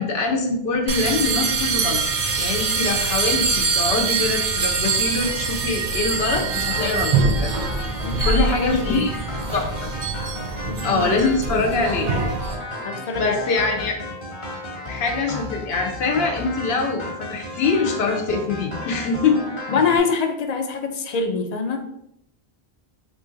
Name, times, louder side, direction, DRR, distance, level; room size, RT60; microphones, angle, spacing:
voice 1, 0.0-2.0 2.4-7.5 8.2-9.1 9.5-9.9 10.8-12.1 13.1-14.0 14.9-19.8, left 3 dB, 80° left, 1 dB, 0.8 m, -24 dB
sound 1, 0.9-12.5, right 4 dB, 55° right, 0.5 m, -24 dB
sound 2, 6.3-20.0, left 1 dB, 30° left, 0.8 m, -34 dB
voice 2, 8.0-9.0 10.7-11.6 12.8-13.4 19.7-21.8, left 5 dB, 55° left, 5 dB, 0.5 m, -25 dB
3.0 x 2.5 x 3.7 m, 0.78 s
omnidirectional pair, 1.0 m